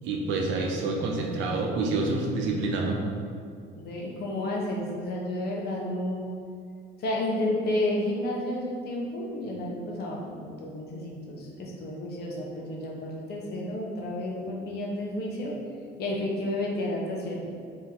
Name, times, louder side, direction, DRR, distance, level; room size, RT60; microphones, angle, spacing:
voice 1, 0.0-3.0, right 3 dB, 85° right, 1 dB, 0.7 m, -27 dB
voice 2, 3.8-6.3 7.0-15.6 16.0-17.4, left 1 dB, 60° left, -2 dB, 0.9 m, -31 dB
3.7 x 2.9 x 4.3 m, 2.3 s
cardioid pair, 145°, 19 cm